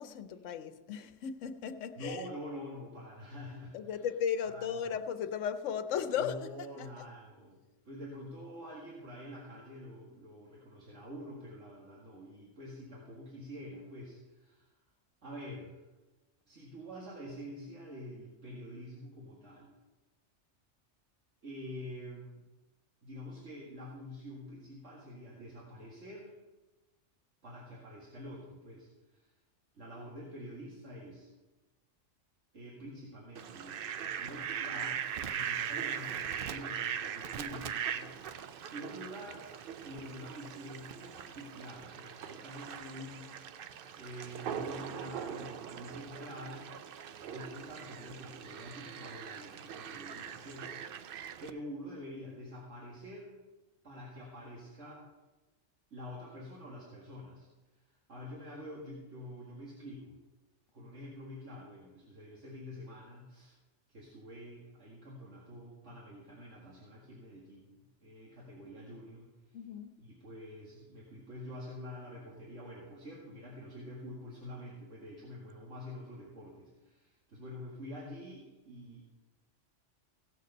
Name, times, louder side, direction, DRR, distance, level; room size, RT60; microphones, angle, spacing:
voice 1, 0.0-2.2 3.7-7.0 69.5-69.9, left 8 dB, 90° left, 1.1 m, -36 dB
voice 2, 2.0-4.1 4.5-4.9 6.2-7.6 7.8-14.7 15.2-15.8 16.5-19.7 21.4-22.4 23.0-26.4 27.4-29.3 29.7-31.3 32.5-33.8 34.2-38.1 38.7-39.4 39.8-43.5 44.0-46.7 47.3-50.8 51.4-53.4 53.8-55.0 55.9-57.5 58.1-60.2 60.7-63.6 63.9-69.3 70.0-79.0, equal, 75° right, 2.3 m, -47 dB
Fowl, 33.3-51.5, right 8 dB, 60° right, 0.7 m, -40 dB
16.5 x 6.6 x 5.4 m
omnidirectional pair, 1.3 m